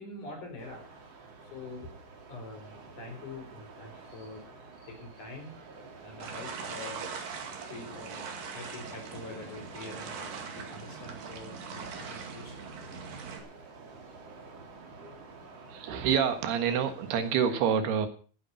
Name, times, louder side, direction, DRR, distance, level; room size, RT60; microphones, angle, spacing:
voice 1, 0.0-1.9 2.3-7.1 7.7-12.6 14.5-14.7, left 2 dB, 55° left, 4 dB, 5.7 m, -46 dB
sound 1, 0.6-17.5, right 4 dB, 45° right, 3.3 m, -50 dB
sound 2, 6.2-13.4, right 5 dB, 65° right, 3.7 m, -41 dB
voice 2, 15.7-18.1, right 7 dB, 90° right, 8 dB, 3.6 m, -27 dB
15.0 x 10.5 x 5.6 m, 0.39 s
omnidirectional pair, 4.4 m